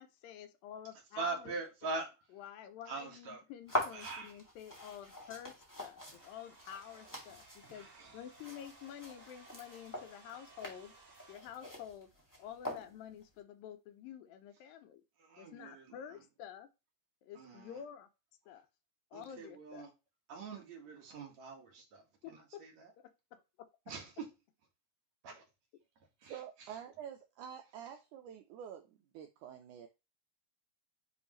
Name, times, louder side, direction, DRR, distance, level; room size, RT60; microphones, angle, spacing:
voice 1, 0.0-1.5 2.3-7.9 8.1-11.0 11.3-12.1 12.4-15.0 15.4-16.7 17.2-18.1 18.5-18.7 19.1-19.9 22.2-22.6 23.0-23.1 23.6-23.7, left 9 dB, 80° left, 2.3 m, -49 dB
voice 2, 1.1-2.3 2.9-3.4 3.9-4.4 7.7-8.2 15.2-16.2 17.4-17.8 19.1-19.9 20.3-22.9 23.9-24.3 25.2-25.4 26.2-26.8, right 3 dB, 55° right, 2.4 m, -43 dB
sound 1, 3.7-13.2, equal, 10° left, 1.2 m, -44 dB
Domestic sounds home sounds, 5.8-11.4, right 3 dB, 20° right, 1.1 m, -60 dB
voice 3, 26.2-29.9, right 9 dB, 85° right, 1.8 m, -48 dB
9.7 x 3.4 x 3.0 m
omnidirectional pair, 4.2 m